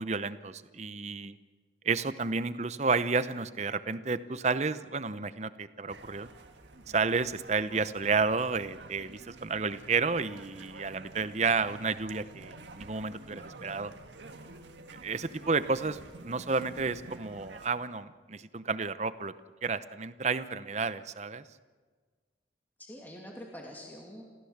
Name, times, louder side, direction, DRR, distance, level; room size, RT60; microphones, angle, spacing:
voice 1, 0.0-1.4 1.8-6.3 6.9-13.9 15.0-19.3 19.6-21.4, right 4 dB, 40° right, 14 dB, 0.8 m, -31 dB
sound 1, 5.9-17.7, right 2 dB, 80° right, 1.7 m, -50 dB
voice 2, 13.3-13.9 22.8-24.2, equal, 10° left, -1 dB, 2.7 m, -46 dB
29.0 x 15.0 x 7.3 m, 1.5 s
head